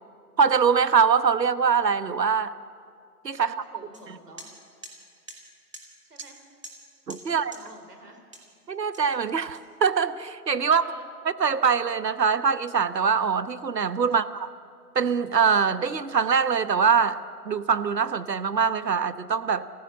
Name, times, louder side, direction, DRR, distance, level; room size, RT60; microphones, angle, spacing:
voice 1, 0.4-2.5 3.2-3.5 7.1-7.5 8.7-10.8 11.4-14.5 14.9-19.7, right 6 dB, 85° right, 14 dB, 1.1 m, -23 dB
voice 2, 3.3-4.5 6.0-6.4 7.2-8.2 10.6-11.1 14.1-14.4, right 2 dB, 70° right, 4 dB, 4.5 m, -49 dB
sound 1, 3.9-4.0 4.4-4.5 4.8-4.9 5.3-5.4 5.7-5.8 6.2-6.3 6.6-6.8 7.1-7.2 7.5-7.6 8.3-8.5 8.9-10.0, right 2 dB, 20° right, 1.4 m, -44 dB
25.0 x 14.5 x 7.4 m, 2.3 s
figure-of-eight pair, 170°, 48 cm